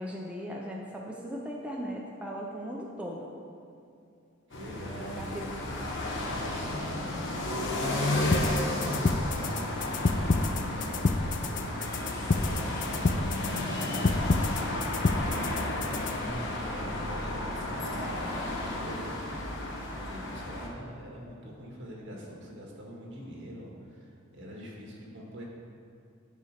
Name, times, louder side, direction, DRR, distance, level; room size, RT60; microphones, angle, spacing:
voice 1, 0.0-3.3 5.0-5.5, equal, 5° right, -2 dB, 0.7 m, -38 dB
sound 1, 4.5-20.7, left 1 dB, 60° left, 1.2 m, -33 dB
voice 2, 4.5-5.5 6.1-9.5 10.6-13.2 13.4-16.0 16.6-25.4, equal, 60° right, -2 dB, 1.8 m, -45 dB
sound 2, 8.3-16.3, left 3 dB, 40° left, 0.4 m, -29 dB
Livestock farm animals working animals, 11.7-16.2 16.5-17.0, left 1 dB, 15° left, 0.9 m, -51 dB
9.8 x 4.5 x 6.6 m, 2.5 s
head